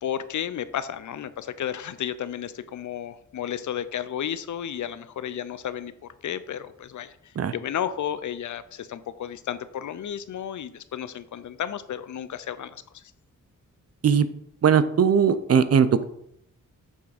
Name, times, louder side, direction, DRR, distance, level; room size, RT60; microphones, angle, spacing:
voice 1, 0.0-13.0, left 9 dB, 65° left, 14 dB, 0.5 m, -33 dB
voice 2, 14.6-16.0, right 7 dB, 50° right, 13 dB, 0.5 m, -19 dB
7.2 x 3.4 x 4.9 m, 0.75 s
cardioid pair, 75°, 32 cm